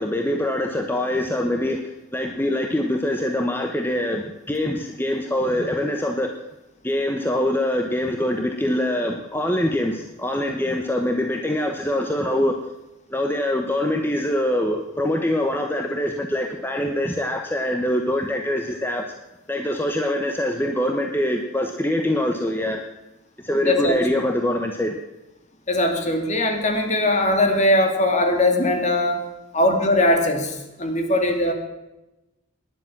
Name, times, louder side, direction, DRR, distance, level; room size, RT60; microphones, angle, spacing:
voice 1, 0.0-6.3 6.8-12.6 13.1-19.0 19.5-22.8 23.4-24.9, left 1 dB, 10° left, 4 dB, 0.9 m, -24 dB
voice 2, 23.6-24.0 25.7-29.2 29.5-31.5, left 1 dB, 35° left, 4 dB, 2.3 m, -20 dB
18.5 x 10.5 x 6.0 m, 0.99 s
head